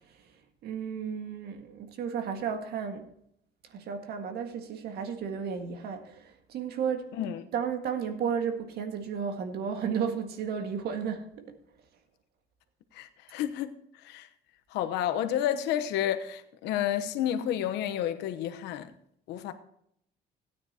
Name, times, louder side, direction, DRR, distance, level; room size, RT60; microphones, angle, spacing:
voice 1, 0.6-3.1 3.7-7.1 7.5-11.6, right 7 dB, 70° right, 1.8 m, -33 dB
voice 2, 7.1-7.4 12.9-13.7 14.0-14.3 14.7-18.9 19.3-19.5, left 10 dB, 90° left, 1.0 m, -30 dB
17.0 x 9.6 x 2.9 m
cardioid pair, 110°, 17 cm